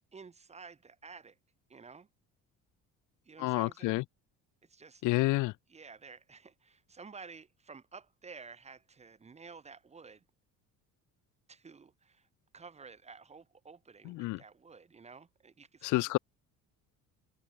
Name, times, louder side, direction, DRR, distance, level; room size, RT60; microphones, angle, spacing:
voice 1, 0.0-1.4 1.7-2.1 3.2-4.0 4.7-5.0 5.7-10.2 11.5-12.3 12.5-16.0, right 5 dB, 20° right, 2.8 m, -52 dB
voice 2, 3.4-4.0 5.0-5.5 14.0-14.4 15.8-16.2, left 20 dB, 55° left, 0.7 m, -29 dB
cardioid pair, 170°, 35 cm